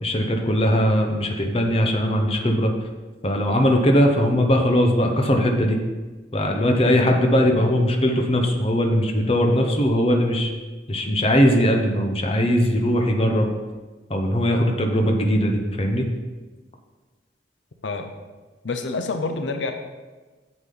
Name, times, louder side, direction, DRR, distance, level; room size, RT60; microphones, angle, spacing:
voice 1, 0.0-2.7 3.2-5.8 6.3-10.5 10.9-13.5 14.1-16.1, equal, 30° left, 3 dB, 0.9 m, -20 dB
voice 2, 18.6-19.7, left 3 dB, 80° left, 6 dB, 0.7 m, -27 dB
8.4 x 7.2 x 3.9 m, 1.3 s
head